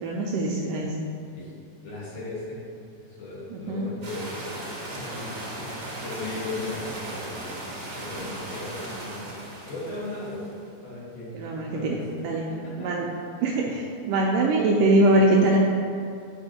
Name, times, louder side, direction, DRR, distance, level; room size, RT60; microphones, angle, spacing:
voice 1, 0.0-0.9 3.5-3.9 11.3-12.5 12.8-13.1 13.4-15.6, right 2 dB, 85° right, -2 dB, 1.9 m, -23 dB
voice 2, 1.8-2.6 3.0-7.5 7.9-10.5 10.8-12.0 12.5-12.9 13.5-13.6, left 2 dB, 80° left, -7 dB, 3.6 m, -37 dB
sound 1, 4.0-10.6, right 1 dB, 60° right, 1.0 m, -37 dB
9.5 x 5.3 x 2.8 m, 2.4 s
omnidirectional pair, 4.3 m